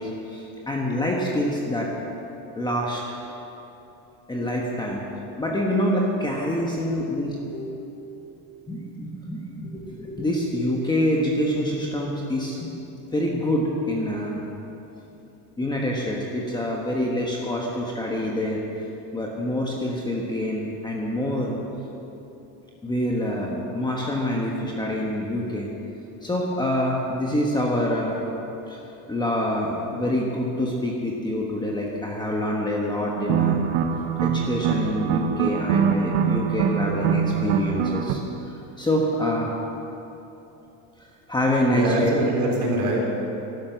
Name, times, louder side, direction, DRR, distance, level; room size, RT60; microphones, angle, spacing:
voice 1, 0.0-1.9 2.5-3.2 4.3-5.0 5.4-8.0 8.7-12.7 13.1-14.4 15.6-18.6 19.1-21.5 22.8-25.7 26.2-28.2 28.7-28.8 29.1-33.6 34.0-38.2 38.5-39.5 41.3-42.1, left 1 dB, 10° left, -2 dB, 1.3 m, -26 dB
sound 1, 33.2-38.2, right 8 dB, 70° right, 1.2 m, -24 dB
voice 2, 41.7-43.1, right 1 dB, 40° right, -1 dB, 3.7 m, -24 dB
12.5 x 12.0 x 8.1 m, 3.0 s
cardioid pair, 150°, 44 cm